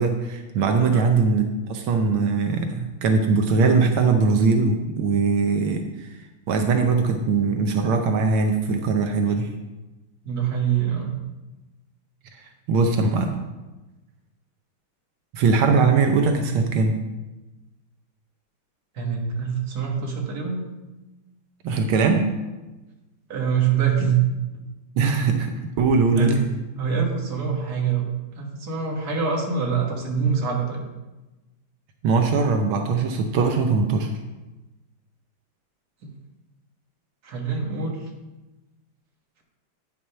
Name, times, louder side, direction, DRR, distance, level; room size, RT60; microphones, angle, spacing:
voice 1, 0.0-6.1 6.5-9.5 12.7-13.4 15.3-17.0 21.6-22.3 25.0-26.4 32.0-34.1, right 4 dB, 85° right, 5 dB, 1.7 m, -21 dB
voice 2, 0.9-1.2 10.2-11.2 18.9-20.6 23.3-24.2 26.2-26.5 26.8-28.1 28.3-30.8 36.0-36.1 37.2-38.1, right 6 dB, 50° right, 0 dB, 2.1 m, -25 dB
9.2 x 6.5 x 5.6 m, 1.1 s
omnidirectional pair, 2.2 m